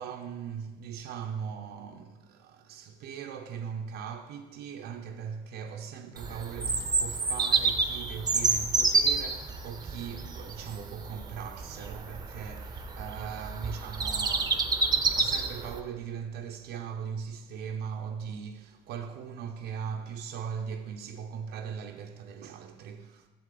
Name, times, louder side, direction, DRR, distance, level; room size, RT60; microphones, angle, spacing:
voice 1, 0.0-23.3, right 7 dB, 80° right, 0.5 m, -39 dB
Bird vocalization bird call bird song, 6.2-15.8, right 4 dB, 25° right, 0.6 m, -29 dB
7.7 x 7.0 x 3.7 m
cardioid pair, 110°, 17 cm